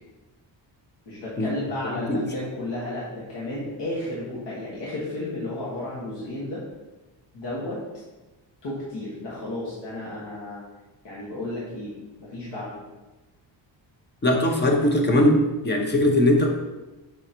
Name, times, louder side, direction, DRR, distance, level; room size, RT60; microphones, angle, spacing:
voice 1, 1.0-6.6 7.3-7.8 8.6-10.6 11.0-11.9 12.2-12.8, left 1 dB, 65° left, -7 dB, 1.7 m, -33 dB
voice 2, 14.2-16.5, left 1 dB, 25° left, 2 dB, 0.9 m, -20 dB
6.1 x 3.9 x 4.4 m, 1.1 s
cardioid pair, 155°, 44 cm